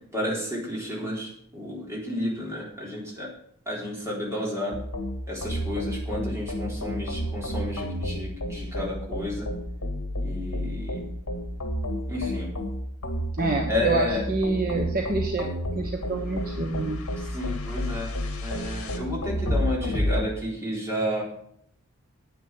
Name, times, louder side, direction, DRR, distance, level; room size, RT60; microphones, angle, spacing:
voice 1, 0.1-3.3 3.7-4.8 5.3-9.5 10.2-11.0 12.1-12.5 13.7-14.2 17.3-18.1 18.4-21.2, left 1 dB, 15° right, -4 dB, 3.9 m, -31 dB
sound 1, 4.7-20.3, equal, 65° left, 2.1 m, -31 dB
voice 2, 13.3-15.5 15.7-17.0, right 3 dB, 40° right, 2 dB, 1.2 m, -27 dB
9.7 x 9.0 x 6.0 m, 0.69 s
head